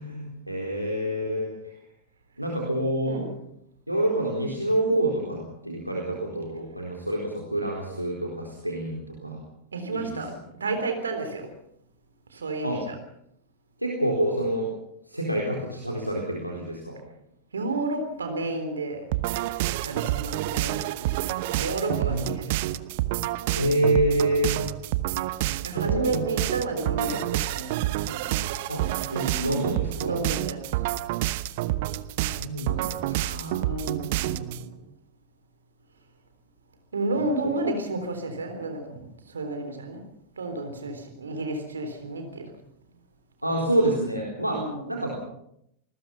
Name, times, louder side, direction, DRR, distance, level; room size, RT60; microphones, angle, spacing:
voice 1, 0.0-1.7 2.4-3.2 3.9-9.4 9.9-10.2 12.6-12.8 13.8-14.7 15.1-17.0 21.9-22.3 23.6-24.6 25.7-26.2 27.0-27.1 28.7-28.8 29.1-30.2 32.3-33.7 37.2-37.3 43.4-44.6 44.9-45.1, right 1 dB, 90° right, -1 dB, 4.1 m, -27 dB
voice 2, 9.7-11.5 12.3-13.0 17.5-19.1 19.8-22.5 25.6-28.5 30.0-30.6 33.6-34.8 36.9-40.0 40.4-42.5 44.5-44.9, right 2 dB, 70° right, 6 dB, 3.7 m, -32 dB
sound 1, 19.1-34.6, right 16 dB, 50° right, 1.0 m, -28 dB
27.5 x 20.0 x 5.8 m, 0.75 s
figure-of-eight pair, 90°, 0 cm